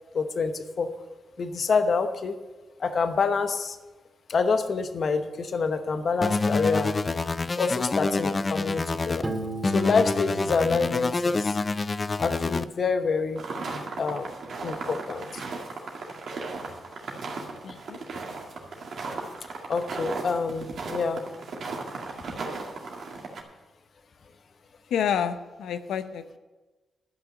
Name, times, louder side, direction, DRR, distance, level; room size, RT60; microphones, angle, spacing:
voice 1, 0.1-0.9 1.4-2.4 2.8-3.8 4.3-6.9 7.6-9.2 9.6-11.6 12.2-13.4 14.0-14.3 14.6-15.4 17.7-17.8 19.7-21.2, left 4 dB, 60° left, 9 dB, 1.0 m, -27 dB
sound 1, 6.2-9.2 9.6-12.6, left 3 dB, 40° left, 0.6 m, -27 dB
Piano, 9.2-12.0, right 1 dB, 25° right, 2.3 m, -37 dB
sound 2, 13.4-23.4, right 3 dB, 65° right, 2.1 m, -36 dB
voice 2, 17.6-18.0 24.9-26.4, left 8 dB, 80° left, 11 dB, 0.7 m, -29 dB
12.0 x 5.9 x 8.9 m, 1.2 s
supercardioid pair, 50°, 0 cm